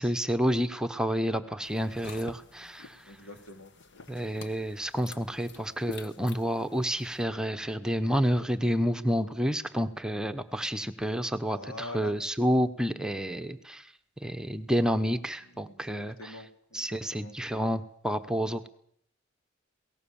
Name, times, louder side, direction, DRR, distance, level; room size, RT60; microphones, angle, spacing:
voice 1, 0.0-3.0 4.1-13.9 14.2-16.4 16.7-18.7, equal, 5° right, 9 dB, 1.0 m, -29 dB
sound 1, 1.6-7.2, left 4 dB, 60° left, 1.3 m, -49 dB
voice 2, 3.0-4.5 11.4-12.1 15.4-17.3, left 1 dB, 85° left, 6 dB, 3.2 m, -46 dB
22.0 x 18.0 x 7.1 m, 0.65 s
head